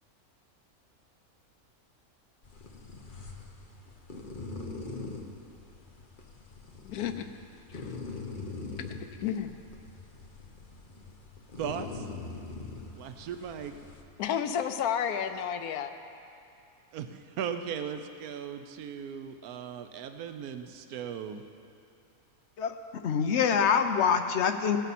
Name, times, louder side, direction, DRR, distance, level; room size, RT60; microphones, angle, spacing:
sound 1, 2.4-14.0, left 3 dB, 40° left, 1.1 m, -43 dB
voice 1, 6.8-7.3 7.7-7.9 8.8-8.9 9.2-9.5 14.2-15.9, left 8 dB, 85° left, 7 dB, 1.1 m, -31 dB
voice 2, 11.6-12.1 13.0-13.8 16.9-21.4, right 8 dB, 90° right, 8 dB, 1.1 m, -37 dB
voice 3, 23.0-24.8, left 7 dB, 55° left, 7 dB, 0.9 m, -25 dB
16.5 x 13.5 x 4.2 m, 2.6 s
omnidirectional pair, 1.5 m